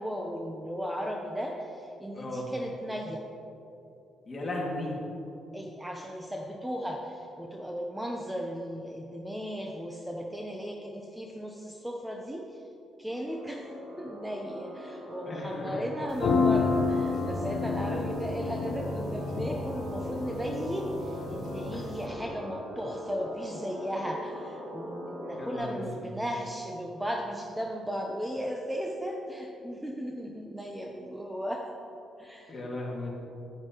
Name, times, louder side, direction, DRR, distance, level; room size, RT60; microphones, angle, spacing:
voice 1, 0.0-3.3 5.5-12.7 13.0-13.7 14.0-31.7 32.2-32.5, equal, 5° right, 1 dB, 0.7 m, -36 dB
voice 2, 2.1-2.5 4.3-5.0 15.3-15.8 21.7-21.8 25.4-26.1 32.5-33.1, left 2 dB, 30° left, -3 dB, 2.2 m, -36 dB
sound 1, 13.2-25.6, equal, 50° right, 2.0 m, -41 dB
sound 2, 16.1-22.0, left 4 dB, 70° left, 0.8 m, -30 dB
9.6 x 9.4 x 3.0 m, 2.8 s
cardioid pair, 90°, 0 cm